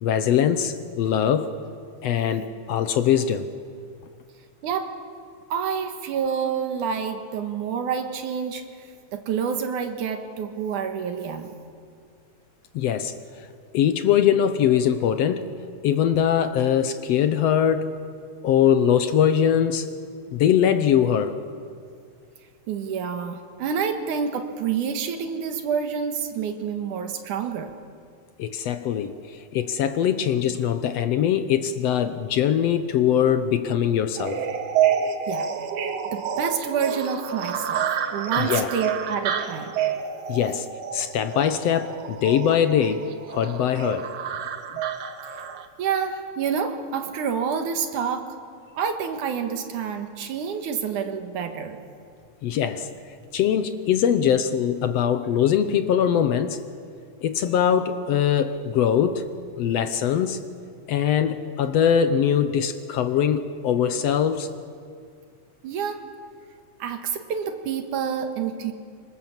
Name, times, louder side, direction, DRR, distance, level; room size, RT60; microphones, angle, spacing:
voice 1, 0.0-1.5 2.0-3.5 12.7-13.2 13.7-15.5 15.8-18.1 18.4-19.9 20.3-21.4 28.4-34.5 38.4-38.7 40.3-44.1 52.4-52.9 53.3-56.6 57.2-59.3 59.6-60.5 60.9-64.5, left 9 dB, 70° left, 1.8 m, -22 dB
voice 2, 5.5-8.6 9.1-11.5 22.7-27.7 35.3-35.5 36.1-39.8 45.8-48.3 48.7-51.8 65.6-66.1 66.8-68.7, right 7 dB, 90° right, 3.0 m, -28 dB
sound 1, 34.2-45.7, right 8 dB, 65° right, 2.2 m, -28 dB
25.0 x 25.0 x 7.4 m
omnidirectional pair, 3.5 m